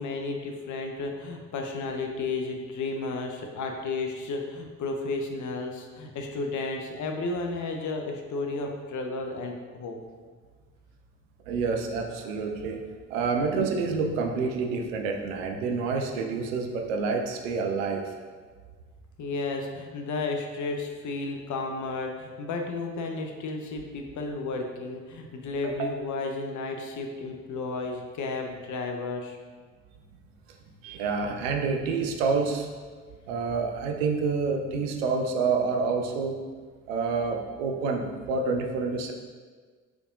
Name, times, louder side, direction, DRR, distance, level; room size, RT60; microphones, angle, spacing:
voice 1, 0.0-10.0 19.2-29.4, left 3 dB, 50° left, 3 dB, 0.7 m, -33 dB
voice 2, 11.5-12.8 13.1-18.1 25.6-25.9 30.8-32.7 33.3-36.4 36.9-39.1, right 4 dB, 80° right, 3 dB, 0.5 m, -28 dB
4.7 x 3.3 x 2.6 m, 1.5 s
hypercardioid pair, 45°, 38 cm